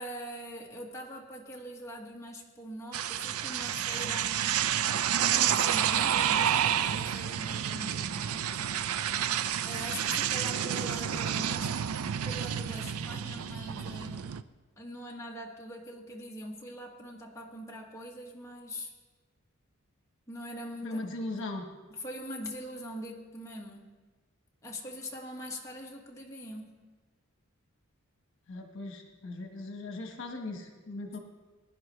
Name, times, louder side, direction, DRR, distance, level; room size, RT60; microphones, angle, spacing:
voice 1, 0.0-4.4 5.2-9.3 9.6-11.7 12.2-14.3 14.8-18.9 20.3-21.0 21.9-23.9 24.6-26.8, equal, 15° left, -2 dB, 1.5 m, -42 dB
sound 1, 2.9-14.4, right 9 dB, 90° right, 0.4 m, -30 dB
voice 2, 20.8-21.7 28.5-31.2, left 2 dB, 60° left, 3 dB, 1.3 m, -38 dB
21.0 x 10.5 x 3.2 m, 1.3 s
head